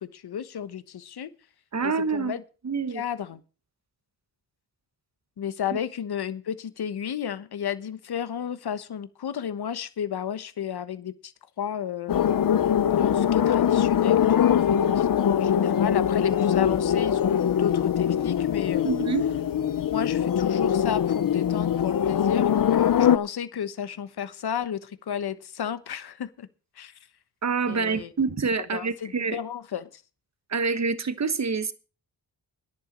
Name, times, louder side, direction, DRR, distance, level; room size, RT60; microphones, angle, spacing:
voice 1, 0.1-1.3 1.8-2.4 2.9-3.4 5.4-11.3 11.6-12.6 12.9-18.9 19.9-26.5 26.8-26.9 27.7-28.1 28.7-29.9, left 9 dB, 75° left, 1.2 m, -32 dB
voice 2, 1.7-2.4 2.6-3.0 18.8-19.2 27.4-29.4 30.5-31.7, right 5 dB, 45° right, 1.3 m, -26 dB
sound 1, 12.1-23.2, left 9 dB, 55° left, 0.8 m, -22 dB
10.5 x 9.0 x 7.4 m
cardioid pair, 90°, 39 cm